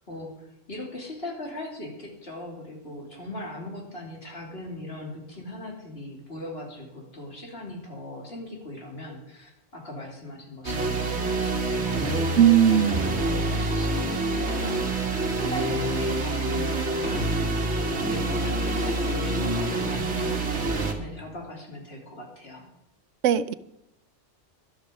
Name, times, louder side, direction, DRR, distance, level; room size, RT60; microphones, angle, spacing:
voice 1, 0.1-15.1 15.4-22.7, left 1 dB, 55° left, 0 dB, 3.3 m, -39 dB
sound 1, 10.6-20.9, right 2 dB, 65° right, 1.8 m, -26 dB
voice 2, 12.4-13.0 23.2-23.5, right 10 dB, 90° right, 16 dB, 1.0 m, -18 dB
13.0 x 12.0 x 5.1 m, 0.86 s
omnidirectional pair, 1.2 m